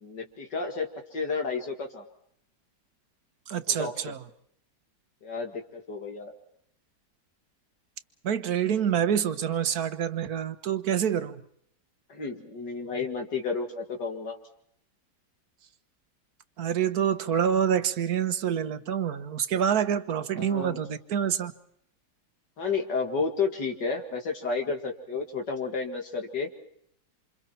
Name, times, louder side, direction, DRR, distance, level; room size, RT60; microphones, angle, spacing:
voice 1, 0.0-2.0 3.7-4.1 5.2-6.3 12.1-14.4 20.4-20.8 22.6-26.5, left 4 dB, 70° left, 2.8 m, -31 dB
voice 2, 3.5-4.2 8.2-11.4 16.6-21.5, right 8 dB, 60° right, 1.6 m, -27 dB
28.0 x 27.5 x 4.5 m
omnidirectional pair, 1.9 m